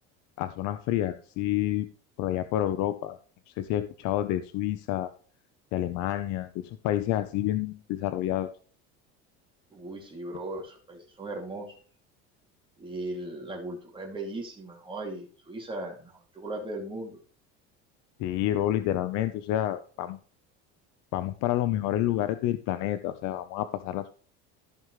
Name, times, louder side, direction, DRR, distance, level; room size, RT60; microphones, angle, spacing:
voice 1, 0.4-1.9 2.2-3.2 3.5-5.1 5.7-8.5 18.2-20.2 21.1-24.1, left 13 dB, 65° left, 11 dB, 0.8 m, -29 dB
voice 2, 9.7-11.8 12.8-17.2, right 2 dB, 15° right, -1 dB, 2.7 m, -38 dB
14.5 x 5.5 x 3.2 m, 0.42 s
cardioid pair, 120°, 30 cm